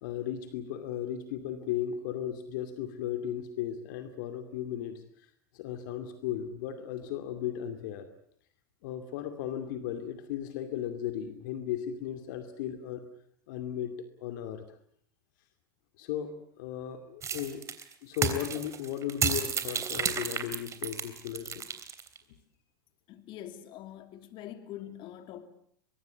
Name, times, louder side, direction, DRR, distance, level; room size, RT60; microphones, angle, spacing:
voice 1, 0.0-5.0 5.5-8.1 8.8-13.0 13.5-13.9 14.2-14.6 16.0-17.6 18.0-21.7, left 10 dB, 60° left, 2.5 m, -36 dB
sound 1, 17.2-22.2, right 6 dB, 25° right, 3.3 m, -32 dB
voice 2, 23.1-25.5, left 11 dB, 45° left, 2.9 m, -44 dB
23.5 x 23.0 x 8.3 m
hypercardioid pair, 95°, 11 cm